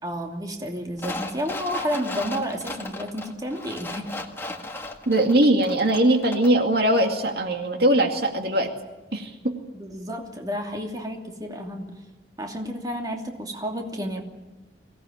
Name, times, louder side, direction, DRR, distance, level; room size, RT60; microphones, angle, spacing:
voice 1, 0.0-4.1 9.7-11.9 12.4-14.2, equal, 20° right, 2 dB, 2.7 m, -31 dB
sound 1, 1.0-6.6 7.0-7.1, left 2 dB, 15° left, 1.7 m, -36 dB
voice 2, 5.1-8.7 9.1-9.6, right 1 dB, 65° right, 4 dB, 2.4 m, -21 dB
24.0 x 17.5 x 9.3 m, 1.1 s
head